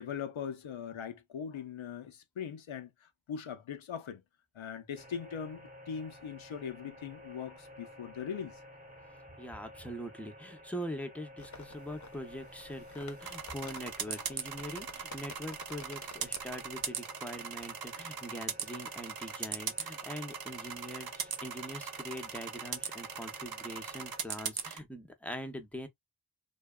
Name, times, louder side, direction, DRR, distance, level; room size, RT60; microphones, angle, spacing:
voice 1, 0.0-4.2 4.5-8.6, left 7 dB, 85° left, 0.6 m, -40 dB
sound 1, 4.9-24.2, equal, 20° right, 1.0 m, -53 dB
voice 2, 9.4-25.9, equal, 5° left, 0.6 m, -43 dB
sound 2, 11.4-16.9, left 4 dB, 40° left, 0.7 m, -53 dB
sound 3, 13.2-24.8, right 7 dB, 55° right, 0.5 m, -40 dB
2.7 x 2.3 x 2.2 m
wide cardioid pair, 60°, 46 cm